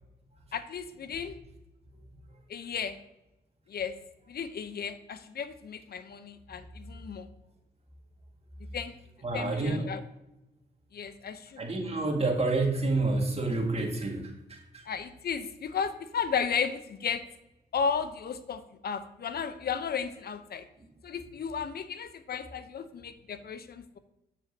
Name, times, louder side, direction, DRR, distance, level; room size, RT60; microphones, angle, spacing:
voice 1, 0.5-1.4 2.5-3.0 3.7-3.9 4.3-7.3 8.7-8.9 9.3-10.0 10.9-11.7 14.9-17.2 17.7-20.6 21.0-24.0, left 6 dB, 60° left, 11 dB, 0.7 m, -34 dB
voice 2, 9.2-9.9 11.6-14.8, right 2 dB, 35° right, 1 dB, 1.9 m, -29 dB
7.4 x 6.9 x 2.8 m, 0.92 s
supercardioid pair, 50°, 18 cm